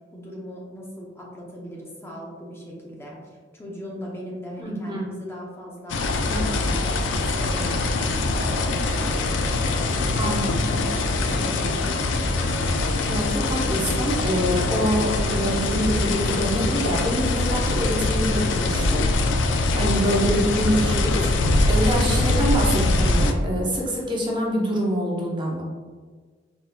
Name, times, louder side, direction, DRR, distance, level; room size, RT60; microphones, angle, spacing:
voice 1, 0.1-6.0 6.3-9.1 9.8-12.5, equal, 15° left, -3 dB, 0.6 m, -39 dB
voice 2, 4.6-5.1 6.3-6.5 10.2-10.6 13.1-19.0 19.4-25.6, equal, 25° right, -3 dB, 0.8 m, -25 dB
sound 1, 5.9-23.3, left 2 dB, 75° left, 0.4 m, -23 dB
3.9 x 3.9 x 2.2 m, 1.5 s
head